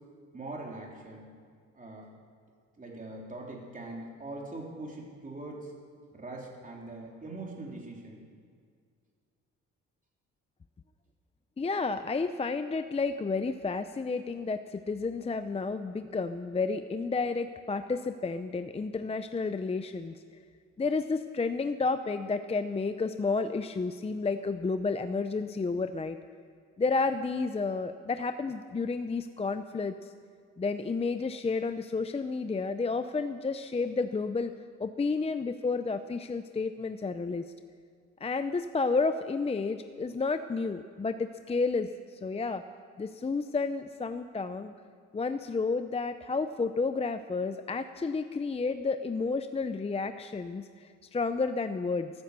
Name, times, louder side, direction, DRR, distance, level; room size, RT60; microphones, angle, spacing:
voice 1, 0.3-1.3 1.7-2.1 2.8-5.7 6.1-8.2, right 2 dB, 25° right, -1 dB, 3.7 m, -42 dB
voice 2, 11.6-20.2 20.8-26.2 26.8-30.1 30.6-34.5 34.8-37.5 38.2-42.6 43.0-44.7 45.1-52.1, left 4 dB, 20° left, 10 dB, 0.6 m, -31 dB
14.0 x 13.5 x 6.8 m, 2.1 s
cardioid pair, 90°, 30 cm